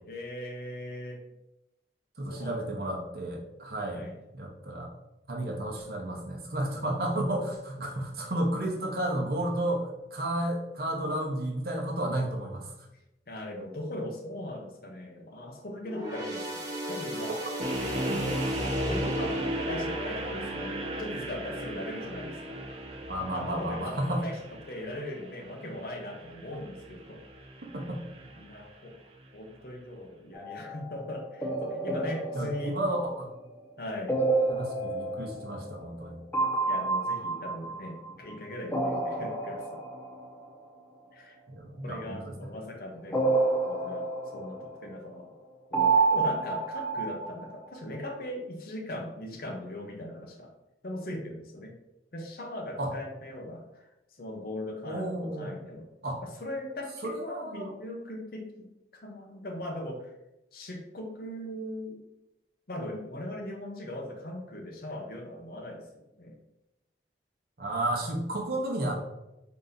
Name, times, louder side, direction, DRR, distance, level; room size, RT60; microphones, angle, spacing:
voice 1, 0.0-1.2 2.3-2.6 3.8-4.2 13.3-17.3 17.8-22.7 23.1-27.2 28.4-28.9 29.3-32.8 33.8-34.2 36.7-39.8 41.1-41.4 41.8-43.2 43.6-44.1 44.3-45.3 45.7-50.5 50.8-51.8 52.1-53.9 54.2-55.9 56.2-58.7 59.0-60.1 60.5-62.0 62.7-66.4, left 1 dB, 55° left, 2 dB, 0.7 m, -39 dB
voice 2, 2.2-4.1 4.3-4.9 5.3-9.9 10.1-12.7 23.1-24.2 27.7-28.0 32.3-33.3 34.5-36.2 41.5-42.5 52.8-52.9 54.8-55.5 56.0-56.2 57.0-57.7 67.6-68.9, right 1 dB, 55° right, -1 dB, 0.9 m, -32 dB
sound 1, 15.8-23.5 23.9-24.1 25.0-25.1, right 1 dB, 20° right, 1.2 m, -38 dB
sound 2, 17.6-28.7, right 1 dB, 35° right, 0.5 m, -36 dB
sound 3, 30.3-30.9 31.4-33.5 34.1-36.1 36.3-38.3 38.7-40.5 43.1-45.0 45.7-47.7, right 3 dB, 10° left, 0.6 m, -29 dB
3.9 x 2.7 x 3.7 m, 0.92 s
head